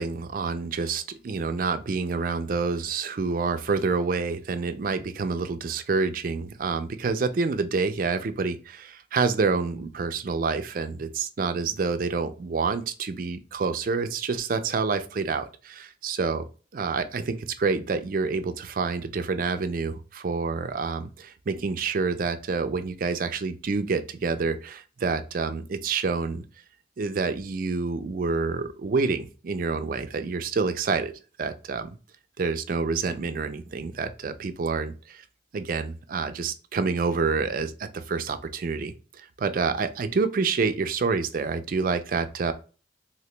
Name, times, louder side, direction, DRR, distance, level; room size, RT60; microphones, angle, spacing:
voice 1, 0.0-16.4 16.7-26.4 27.0-31.1 31.4-32.0 32.4-35.2 35.5-38.9 39.4-42.5, right 4 dB, 50° right, 9 dB, 0.4 m, -28 dB
2.9 x 2.9 x 3.2 m, 0.35 s
head